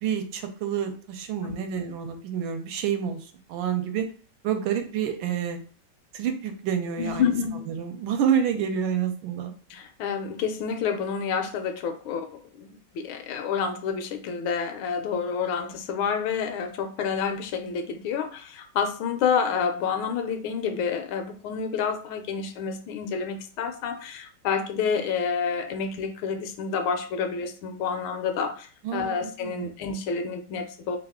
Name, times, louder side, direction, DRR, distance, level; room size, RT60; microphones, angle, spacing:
voice 1, 0.0-4.1 4.4-5.6 6.1-7.3 7.7-9.5 28.8-29.7, right 8 dB, 80° right, 6 dB, 1.3 m, -28 dB
voice 2, 7.0-7.6 9.7-31.0, left 6 dB, 80° left, 7 dB, 1.4 m, -29 dB
3.5 x 2.4 x 3.5 m, 0.41 s
omnidirectional pair, 2.2 m